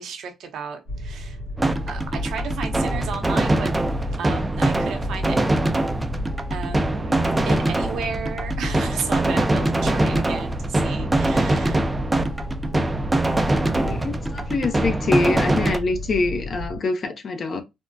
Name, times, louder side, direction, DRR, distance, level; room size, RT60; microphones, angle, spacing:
voice 1, 0.0-1.4 1.9-3.7 4.2-5.4 6.5-11.8, right 6 dB, 75° right, 0.8 m, -33 dB
sound 1, 0.9-16.8, equal, 80° left, 1.8 m, -32 dB
sound 2, 1.6-15.8, right 1 dB, 15° right, 0.4 m, -23 dB
voice 2, 13.8-17.6, left 3 dB, 50° left, 0.6 m, -25 dB
3.5 x 2.1 x 2.5 m
cardioid pair, 90°, 0 cm